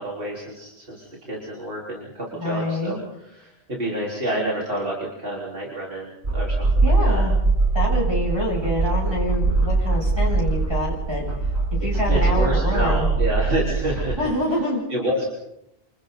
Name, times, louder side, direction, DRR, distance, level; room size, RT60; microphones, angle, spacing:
voice 1, 0.0-7.2 12.1-14.2 14.5-14.6 14.9-15.3, right 1 dB, 60° right, -4 dB, 4.5 m, -28 dB
voice 2, 2.4-3.0 6.8-7.3 7.7-11.3 11.8-13.1 14.2-14.8, left 1 dB, 25° right, -5 dB, 7.5 m, -26 dB
sound 1, 6.2-14.1, right 3 dB, 85° right, 4.5 m, -22 dB
28.0 x 27.5 x 4.0 m, 0.80 s
omnidirectional pair, 1.1 m